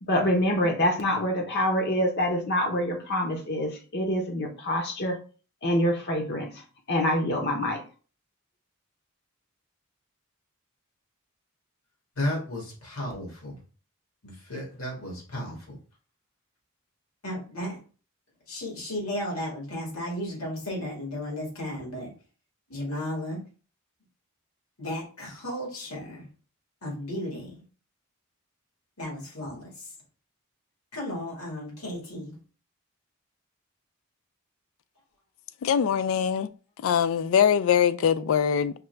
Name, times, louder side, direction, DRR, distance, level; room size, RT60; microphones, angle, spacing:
voice 1, 0.0-5.2 5.6-6.5 6.9-7.8, equal, 50° left, 0.7 m, -26 dB
voice 2, 12.1-13.6 14.2-15.8 17.2-17.8 18.5-22.1 22.7-23.4 24.8-26.3 26.8-27.6 29.0-29.9 30.9-32.3, left 1 dB, 85° left, 1.7 m, -34 dB
voice 3, 35.6-36.5 36.8-38.7, left 8 dB, 70° left, 0.3 m, -22 dB
4.9 x 2.3 x 3.2 m
head